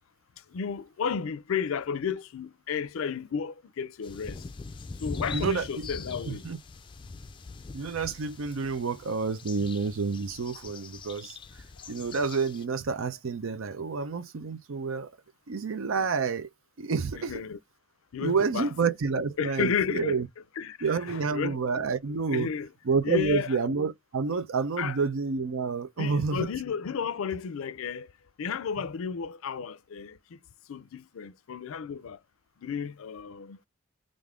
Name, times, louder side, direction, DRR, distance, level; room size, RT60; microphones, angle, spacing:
voice 1, 0.5-4.4 5.0-6.4 17.1-17.6 18.1-18.7 19.4-20.2 20.6-21.8 22.3-22.7 23.0-23.6 24.8-25.0 26.0-28.1 28.4-30.2 30.7-32.2 32.6-33.6, left 6 dB, 90° left, 0.4 m, -32 dB
sound 1, 4.0-12.6, left 4 dB, 25° left, 0.3 m, -42 dB
voice 2, 5.3-5.9 6.3-6.6 7.7-11.4 11.9-15.1 15.5-16.5 16.8-17.4 18.2-20.3 20.8-22.5 22.9-26.5, right 5 dB, 80° right, 0.5 m, -29 dB
3.4 x 2.5 x 3.6 m
head